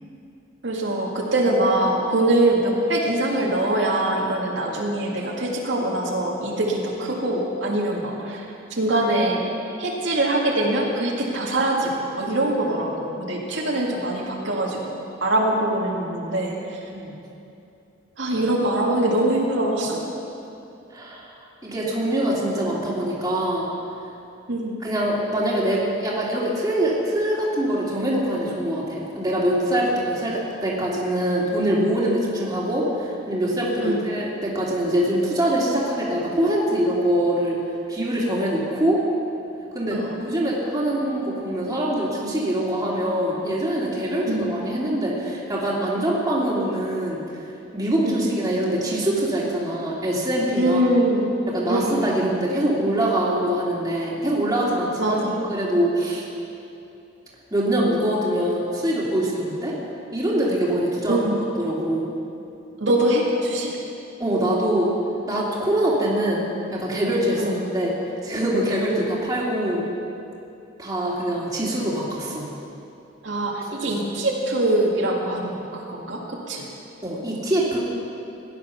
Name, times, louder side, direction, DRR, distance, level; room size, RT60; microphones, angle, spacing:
voice 1, 0.6-8.5 8.7-9.4 9.8-14.9 15.2-16.8 18.2-20.0 24.5-24.7 33.8-34.0 39.9-40.2 44.3-44.5 48.0-48.2 50.6-51.3 51.7-52.4 55.0-55.4 61.1-61.4 62.8-63.8 67.4-67.5 68.9-69.0 73.2-76.6, right 1 dB, 75° right, -3 dB, 2.1 m, -23 dB
voice 2, 20.9-21.3 21.6-23.7 24.8-37.6 37.9-39.0 39.7-47.2 47.7-50.9 51.5-56.3 57.5-59.8 60.1-61.3 61.6-62.1 64.2-64.9 65.3-66.4 66.7-67.9 68.2-69.9 70.8-72.5 73.8-74.1 77.0-77.8, right 1 dB, 20° right, -6 dB, 2.5 m, -24 dB
16.5 x 10.5 x 5.8 m, 2.7 s
head